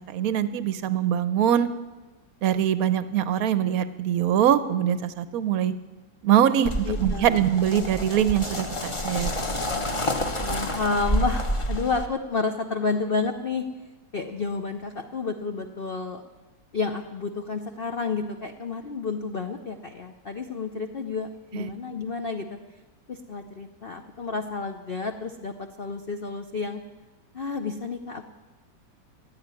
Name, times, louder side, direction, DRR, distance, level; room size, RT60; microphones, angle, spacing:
voice 1, 0.1-1.7 2.4-5.7 6.2-6.7 7.0-9.3 21.5-21.7, right 10 dB, 60° right, 13 dB, 1.0 m, -23 dB
sound 1, 6.6-12.1, equal, 25° left, 0.7 m, -28 dB
voice 2, 6.9-7.4 10.5-13.6 14.1-16.2 16.7-22.6 23.1-26.8 27.3-28.2, left 4 dB, 65° left, 6 dB, 0.5 m, -30 dB
15.0 x 8.8 x 9.6 m, 1.1 s
omnidirectional pair, 2.1 m